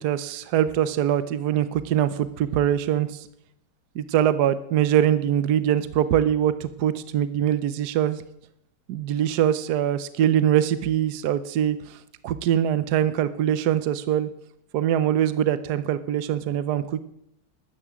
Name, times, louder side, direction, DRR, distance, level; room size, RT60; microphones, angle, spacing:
voice 1, 0.0-3.3 3.9-8.2 8.9-12.0 12.2-14.3 14.7-17.0, right 10 dB, 65° right, 14 dB, 1.2 m, -23 dB
13.5 x 9.7 x 9.3 m, 0.77 s
omnidirectional pair, 2.0 m